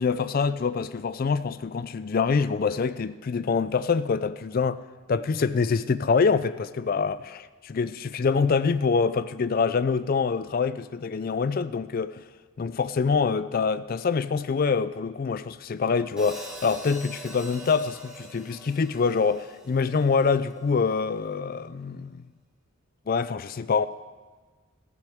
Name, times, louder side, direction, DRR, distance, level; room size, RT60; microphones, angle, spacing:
voice 1, 0.0-4.8 5.1-12.2 12.6-22.2 23.1-23.9, left 5 dB, 40° left, 0.3 m, -25 dB
Hi-hat, 16.2-20.3, right 1 dB, 5° right, 1.6 m, -43 dB
15.0 x 13.0 x 3.6 m
head